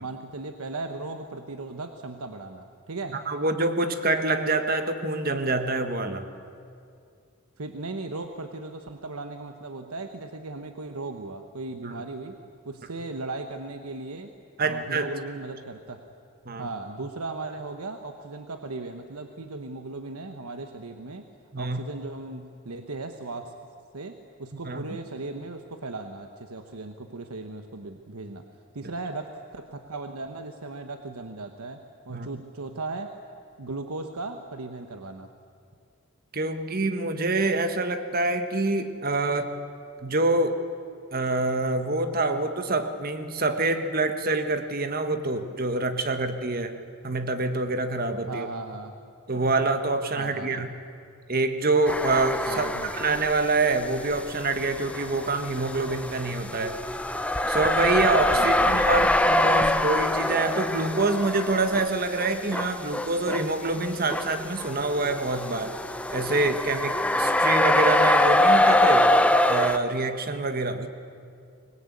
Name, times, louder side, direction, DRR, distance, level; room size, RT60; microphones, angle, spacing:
voice 1, 0.0-3.2 7.6-12.4 12.6-14.3 14.6-16.0 16.6-21.2 21.6-23.6 23.9-28.5 28.7-33.2 33.6-35.3 48.3-48.9 50.1-50.7 52.5-52.9 58.3-59.1, right 3 dB, 90° right, 6 dB, 1.2 m, -37 dB
voice 2, 3.3-6.3 11.8-11.9 14.6-15.1 16.4-16.7 21.5-21.8 24.5-25.0 32.1-32.3 36.3-39.5 40.0-40.6 41.1-46.8 47.0-48.5 49.3-50.7 51.3-56.8 57.5-65.8 66.1-69.1 69.5-70.9, right 2 dB, 45° right, 8 dB, 1.4 m, -26 dB
sound 1, 51.8-53.4 53.7-69.8, left 1 dB, 5° left, 0.8 m, -24 dB
24.5 x 21.0 x 8.5 m, 2.4 s
head